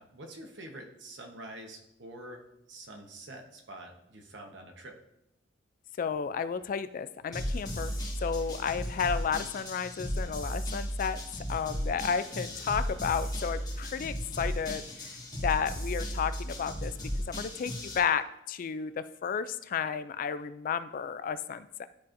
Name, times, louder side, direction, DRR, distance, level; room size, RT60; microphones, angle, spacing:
voice 1, 0.0-2.4 2.7-5.0, right 1 dB, 70° right, 2 dB, 1.0 m, -46 dB
voice 2, 6.0-7.9 8.2-11.2 11.5-14.8 15.4-16.9 17.3-21.9, left 6 dB, 45° left, 13 dB, 0.3 m, -32 dB
sound 1, 7.3-18.0, equal, 20° left, 1.5 m, -35 dB
11.5 x 4.1 x 2.6 m, 0.82 s
head